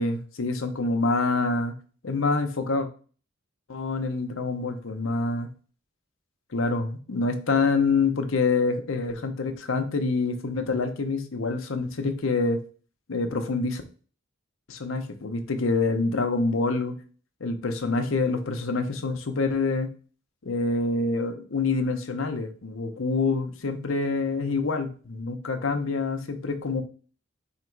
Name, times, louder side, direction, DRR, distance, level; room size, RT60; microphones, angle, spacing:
voice 1, 0.0-1.8 2.0-2.9 3.7-5.5 6.5-12.6 13.1-13.8 14.7-17.0 17.4-19.9 20.4-26.8, left 3 dB, 70° left, 6 dB, 0.7 m, -26 dB
3.9 x 2.9 x 4.5 m, 0.39 s
head